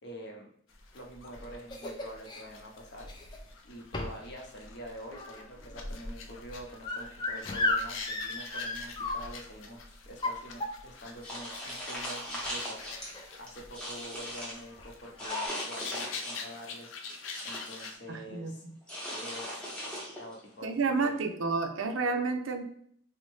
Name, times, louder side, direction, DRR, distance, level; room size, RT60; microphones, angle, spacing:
voice 1, 0.0-0.5 0.9-18.6 19.1-21.1 22.1-22.2, equal, 55° left, 0 dB, 0.8 m, -46 dB
sound 1, 0.7-18.0, left 5 dB, 85° left, 0.5 m, -46 dB
sound 2, 1.0-2.4 3.0-3.5 3.9-4.3 4.6-9.5 10.1-11.1 11.9-12.0 12.4-12.5 12.9-13.4 13.6-13.9 14.8-14.9 15.2-15.5, left 2 dB, 20° left, 0.3 m, -35 dB
sound 3, 11.2-13.1 13.5-14.6 15.2-16.5 16.9-17.9 18.9-20.4, equal, 5° left, 0.7 m, -39 dB
voice 2, 18.1-18.7 20.6-22.6, right 4 dB, 85° right, 7 dB, 0.5 m, -30 dB
4.0 x 2.1 x 3.1 m, 0.64 s
head